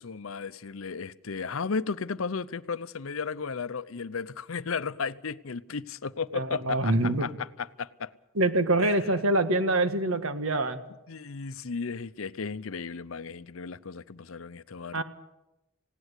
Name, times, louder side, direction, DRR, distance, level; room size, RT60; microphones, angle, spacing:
voice 1, 0.0-8.1 8.8-9.0 11.1-15.0, left 5 dB, 75° left, 0.7 m, -34 dB
voice 2, 6.3-7.3 8.3-10.8 14.9-15.0, right 2 dB, 85° right, 1.7 m, -25 dB
19.0 x 17.0 x 8.3 m
head